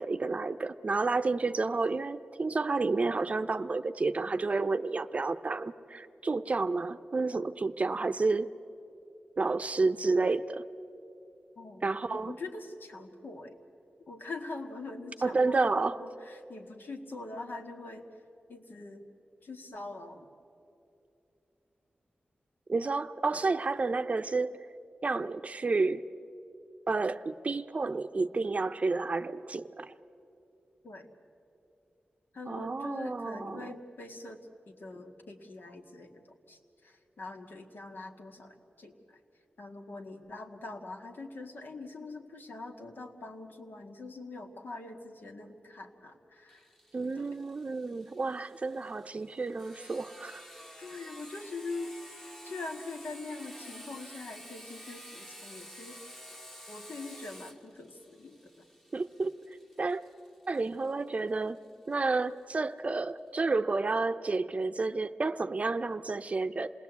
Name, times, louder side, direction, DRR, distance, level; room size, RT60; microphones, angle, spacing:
voice 1, 0.0-8.5 9.4-10.7 11.8-12.3 15.2-16.0 22.7-24.7 25.0-26.0 26.9-29.9 32.5-33.8 46.9-50.4 58.9-60.0 60.5-61.6 61.9-66.7, right 3 dB, 40° right, 0.6 m, -30 dB
voice 2, 11.6-13.6 14.1-18.1 18.5-19.0 19.4-20.3 30.8-31.1 32.3-34.4 34.7-39.2 39.6-46.7 47.2-47.3 50.8-51.9 52.4-56.0 56.7-58.5, left 3 dB, 75° left, 1.9 m, -43 dB
Sawing, 46.5-61.9, equal, 10° left, 1.2 m, -51 dB
27.5 x 19.5 x 8.2 m
wide cardioid pair, 125°, 3 cm